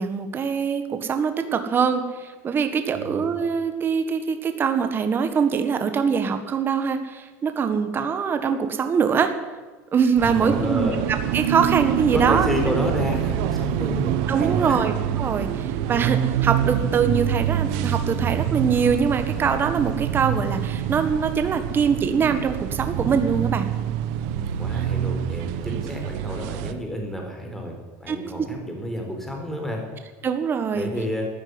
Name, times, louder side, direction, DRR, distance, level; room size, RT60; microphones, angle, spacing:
voice 1, 0.0-9.3 9.9-12.5 14.3-23.7 25.7-25.8 28.1-28.2 30.2-30.9, right 6 dB, 30° right, 8 dB, 1.5 m, -23 dB
voice 2, 10.2-11.0 12.1-14.9 24.4-27.7 28.0-29.8 30.7-31.3, equal, 5° left, 1 dB, 4.1 m, -30 dB
sound 1, 10.2-26.7, right 10 dB, 70° right, 1.0 m, -26 dB
13.0 x 9.9 x 9.7 m, 1.3 s
supercardioid pair, 125°, 8 cm